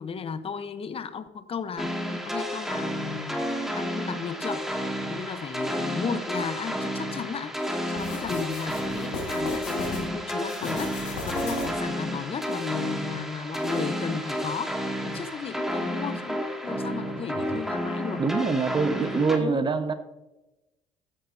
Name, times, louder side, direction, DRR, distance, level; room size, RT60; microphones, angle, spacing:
voice 1, 0.0-1.9 2.2-18.2 18.9-19.7, left 6 dB, 40° left, 12 dB, 1.0 m, -35 dB
sound 1, 1.8-19.4, equal, ahead, 2.3 m, -31 dB
sound 2, 8.0-10.0 10.4-11.9, left 3 dB, 85° left, 2.9 m, -37 dB
voice 2, 18.2-19.9, right 4 dB, 30° right, 9 dB, 1.3 m, -25 dB
14.0 x 10.5 x 2.8 m, 1.0 s
hypercardioid pair, 60°, 15 cm